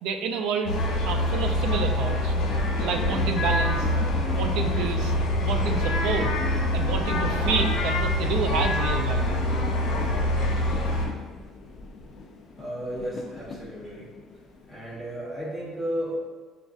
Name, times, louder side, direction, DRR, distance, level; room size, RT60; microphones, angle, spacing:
voice 1, 0.0-0.8 1.0-2.3 2.8-3.9 4.2-5.1 5.4-6.3 6.7-9.4, right 5 dB, 70° right, 6 dB, 0.4 m, -29 dB
sound 1, 0.7-11.1, left 1 dB, 60° left, 0.8 m, -25 dB
sound 2, 0.8-15.2, left 3 dB, 35° left, 0.4 m, -42 dB
voice 2, 12.6-14.0 14.7-16.2, equal, 5° right, -8 dB, 0.8 m, -33 dB
6.1 x 2.4 x 2.4 m, 1.4 s
cardioid pair, 155°, 0 cm